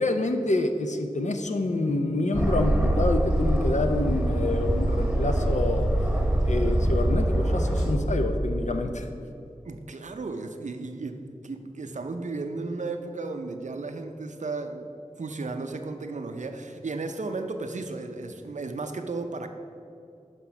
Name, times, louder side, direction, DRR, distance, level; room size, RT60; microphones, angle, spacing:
voice 1, 0.0-5.9 6.4-9.1, left 2 dB, 70° left, 6 dB, 0.6 m, -27 dB
Aircraft, 2.3-8.0, right 1 dB, 5° right, 1.1 m, -24 dB
voice 2, 9.7-14.9 15.2-19.5, right 3 dB, 75° right, 7 dB, 0.5 m, -34 dB
6.0 x 5.4 x 5.8 m, 2.7 s
wide cardioid pair, 65°, 12 cm